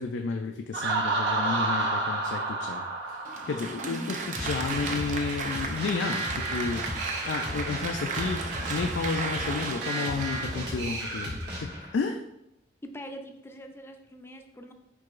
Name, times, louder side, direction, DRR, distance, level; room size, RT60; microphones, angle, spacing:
voice 1, 0.0-3.2 3.5-6.9 7.2-8.4 8.7-12.2, left 4 dB, 90° left, 4 dB, 0.3 m, -32 dB
Laughter, 0.7-4.4, right 2 dB, 80° right, 0.9 m, -29 dB
Applause, 3.2-11.3, right 4 dB, 45° right, 0.5 m, -35 dB
voice 2, 3.8-4.2 12.8-14.7, equal, 15° left, 5 dB, 0.4 m, -42 dB
sound 1, 4.3-12.0, equal, 65° right, 1.3 m, -35 dB
4.7 x 4.5 x 2.5 m, 0.84 s
head